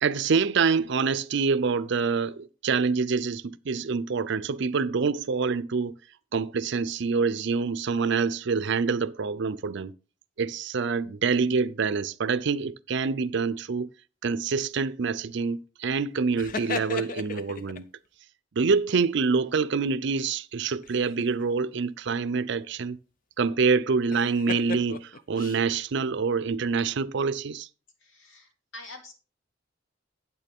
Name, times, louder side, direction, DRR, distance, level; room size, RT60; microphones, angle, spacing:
voice 1, 0.0-5.9 6.3-9.9 10.4-13.9 14.2-17.8 18.6-23.0 23.4-27.7, right 5 dB, 60° right, 0.5 m, -26 dB
sound 1, 16.4-17.8 20.8-21.4 24.1-25.6, left 4 dB, 45° left, 0.6 m, -36 dB
voice 2, 28.0-29.1, left 2 dB, 80° left, 2.3 m, -45 dB
9.0 x 8.6 x 3.6 m
head